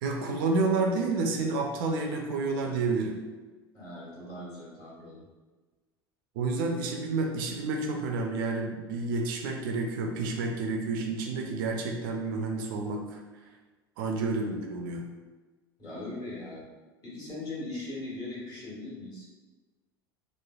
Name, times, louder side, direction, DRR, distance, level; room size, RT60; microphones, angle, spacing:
voice 1, 0.0-3.2 6.4-13.2 14.0-15.0, right 3 dB, 60° right, 2 dB, 0.4 m, -30 dB
voice 2, 3.7-5.3 15.8-16.7 17.0-19.3, left 2 dB, 30° left, -6 dB, 1.3 m, -39 dB
3.1 x 2.1 x 2.3 m, 1.3 s
figure-of-eight pair, 75°, 13 cm